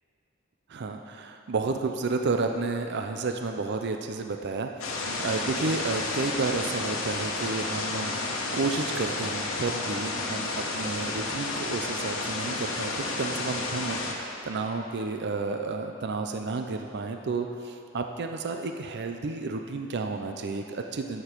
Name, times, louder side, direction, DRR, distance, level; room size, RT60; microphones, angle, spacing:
voice 1, 0.7-21.2, right 3 dB, 55° right, 5 dB, 0.5 m, -31 dB
sound 1, 4.8-14.1, left 2 dB, 75° left, 1.3 m, -31 dB
16.5 x 6.8 x 4.5 m, 2.8 s
head